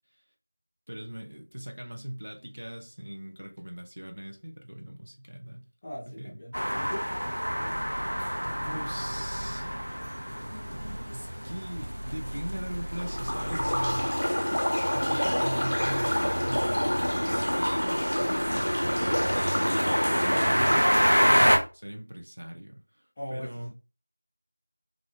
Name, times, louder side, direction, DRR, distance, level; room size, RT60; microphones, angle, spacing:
voice 1, 0.9-5.6 6.2-6.3 8.6-9.8 11.1-14.3 14.9-20.8 21.7-23.0 23.3-23.7, right 1 dB, 50° right, 0.5 m, -39 dB
voice 2, 5.8-7.1 23.2-23.7, equal, 10° left, 0.3 m, -39 dB
sound 1, 6.5-21.6, equal, 80° right, 0.8 m, -29 dB
sound 2, 12.9-21.6, equal, 75° left, 0.5 m, -28 dB
2.4 x 2.1 x 2.6 m
figure-of-eight pair, 175°, 0 cm